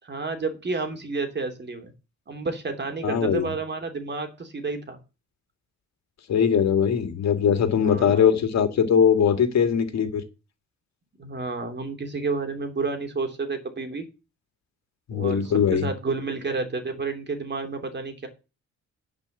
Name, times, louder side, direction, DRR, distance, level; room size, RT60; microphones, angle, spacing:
voice 1, 0.0-1.9 2.3-5.0 7.8-8.4 11.2-14.0 15.1-18.3, right 4 dB, 35° right, 3.0 m, -30 dB
voice 2, 3.0-3.5 6.3-10.2 15.1-15.9, left 7 dB, 60° left, 2.2 m, -21 dB
10.5 x 5.3 x 7.9 m
cardioid pair, 90°, 30 cm